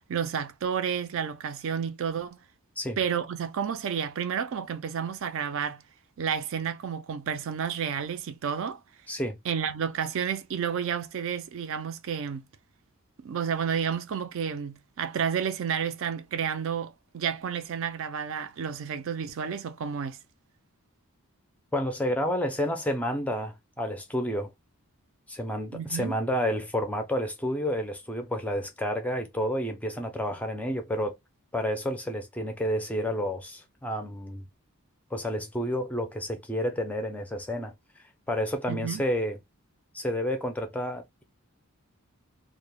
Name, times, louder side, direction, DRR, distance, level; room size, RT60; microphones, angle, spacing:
voice 1, 0.0-2.4 3.0-5.8 6.2-8.8 9.5-12.5 13.2-20.2 25.7-26.2 38.7-39.0, right 7 dB, 60° right, 0.4 m, -31 dB
voice 2, 9.1-9.4 21.7-24.5 25.3-31.2 31.5-34.4 35.1-37.7 38.3-39.4 39.9-41.2, equal, 5° left, 0.4 m, -30 dB
2.1 x 2.0 x 3.0 m
head